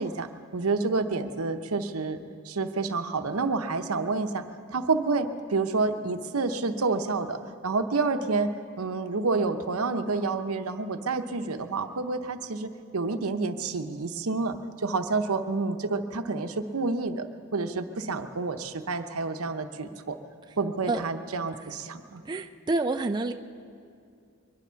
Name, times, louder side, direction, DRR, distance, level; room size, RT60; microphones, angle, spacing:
voice 1, 0.0-2.2 2.4-4.4 4.7-8.5 8.8-17.3 17.5-20.2 20.6-22.2, right 3 dB, 80° right, 8 dB, 0.8 m, -29 dB
voice 2, 22.3-23.3, right 3 dB, 20° right, 5 dB, 0.4 m, -28 dB
22.5 x 11.0 x 5.7 m, 2.4 s
head